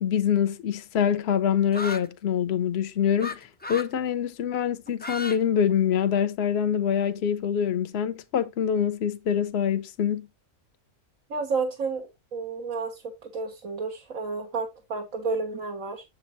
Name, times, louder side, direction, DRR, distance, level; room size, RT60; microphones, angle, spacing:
voice 1, 0.0-10.3, left 8 dB, 55° left, 1.0 m, -25 dB
sound 1, 1.7-2.1 3.2-3.4 3.6-3.9 4.9-5.4 5.7-6.4, left 2 dB, 15° left, 0.4 m, -34 dB
voice 2, 11.3-16.0, right 4 dB, 75° right, 1.7 m, -31 dB
7.4 x 7.3 x 3.0 m
omnidirectional pair, 1.4 m